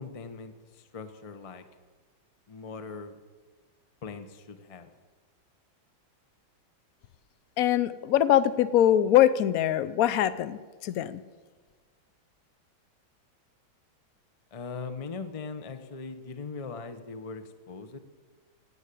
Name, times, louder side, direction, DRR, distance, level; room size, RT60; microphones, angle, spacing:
voice 1, 0.0-1.6 2.5-3.2 4.0-4.9 14.5-18.0, left 4 dB, 45° left, 8 dB, 0.4 m, -40 dB
voice 2, 7.6-11.2, left 11 dB, 70° left, 16 dB, 0.8 m, -23 dB
16.5 x 9.0 x 8.4 m, 1.5 s
omnidirectional pair, 2.2 m